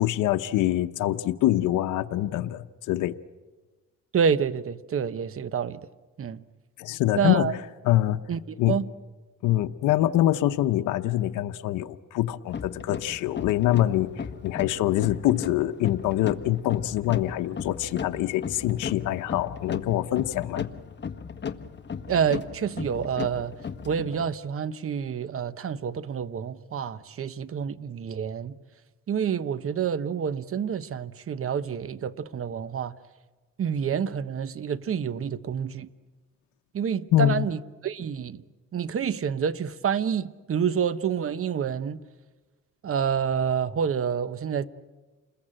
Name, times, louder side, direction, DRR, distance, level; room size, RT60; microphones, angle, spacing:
voice 1, 0.0-3.1 6.8-7.6 7.8-8.2 8.6-8.8 9.4-20.7 37.1-37.5, left 14 dB, 90° left, 0.9 m, -25 dB
voice 2, 4.1-5.8 6.2-6.4 7.1-7.5 8.3-8.9 22.1-23.5 23.9-28.5 29.1-32.9 33.6-35.9 36.7-38.4 38.7-42.0 42.8-44.7, right 7 dB, 45° right, 1.0 m, -28 dB
sound 1, 12.5-24.3, left 6 dB, 35° left, 1.5 m, -36 dB
29.0 x 21.5 x 8.9 m
cardioid pair, 90°, 30 cm